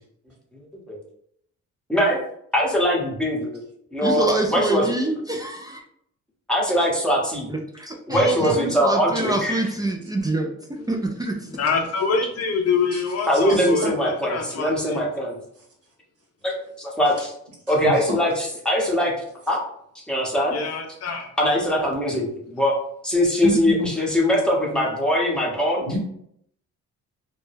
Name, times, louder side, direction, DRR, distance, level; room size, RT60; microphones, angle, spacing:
voice 1, 1.9-2.2 2.5-3.6 3.9-5.1 6.5-7.5 8.1-9.7 11.5-11.6 13.3-15.4 16.4-17.3 17.7-19.1 19.5-19.6 19.9-20.6 21.4-22.7 23.0-25.9, equal, 5° left, -3 dB, 0.8 m, -22 dB
voice 2, 4.0-5.8 7.5-10.5 10.9-11.5, right 2 dB, 15° right, 1 dB, 0.3 m, -25 dB
voice 3, 8.1-8.5 12.9-13.0 13.5-13.7 17.8-17.9 23.4-23.9 25.9-26.0, right 1 dB, 50° right, -1 dB, 1.0 m, -27 dB
voice 4, 11.6-15.0 20.5-21.3, left 5 dB, 55° left, 3 dB, 0.6 m, -25 dB
2.2 x 2.0 x 3.2 m, 0.71 s
cardioid pair, 90°, 30 cm